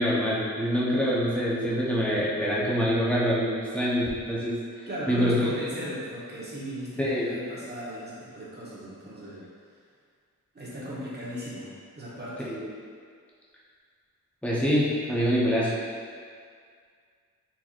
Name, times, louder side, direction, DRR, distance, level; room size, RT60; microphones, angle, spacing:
voice 1, 0.0-4.6 5.1-5.7 7.0-7.3 12.5-12.6 14.4-15.7, equal, 5° left, -7 dB, 0.9 m, -25 dB
voice 2, 4.9-9.4 10.5-11.7 11.9-12.5, equal, 30° right, -8 dB, 1.2 m, -37 dB
4.5 x 4.2 x 2.5 m, 2.1 s
wide cardioid pair, 140°, 32 cm